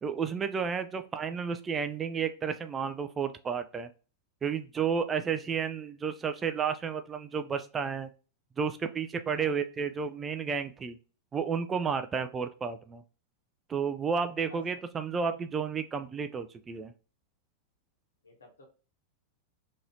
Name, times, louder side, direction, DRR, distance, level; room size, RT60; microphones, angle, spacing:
voice 1, 0.0-3.9 4.4-8.1 8.6-11.0 11.3-13.0 13.7-16.9, right 6 dB, 20° right, 9 dB, 0.4 m, -32 dB
voice 2, 18.2-18.6, left 3 dB, 70° left, 2 dB, 1.3 m, -52 dB
3.8 x 3.0 x 2.6 m, 0.36 s
figure-of-eight pair, 90°, 0 cm